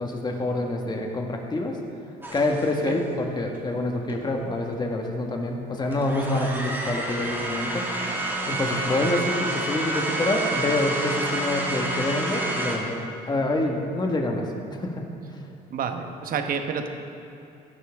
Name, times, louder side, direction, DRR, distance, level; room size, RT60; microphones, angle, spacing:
voice 1, 0.0-1.8 2.3-8.1 8.5-13.0 13.2-14.4 14.7-15.1, left 2 dB, 25° left, 2 dB, 1.6 m, -27 dB
sound 1, 2.2-3.0 4.1-4.2 5.9-12.8, right 1 dB, 10° right, 2.0 m, -29 dB
voice 2, 15.7-16.9, right 6 dB, 55° right, 6 dB, 1.1 m, -29 dB
15.5 x 12.0 x 3.6 m, 2.8 s
cardioid pair, 110°, 17 cm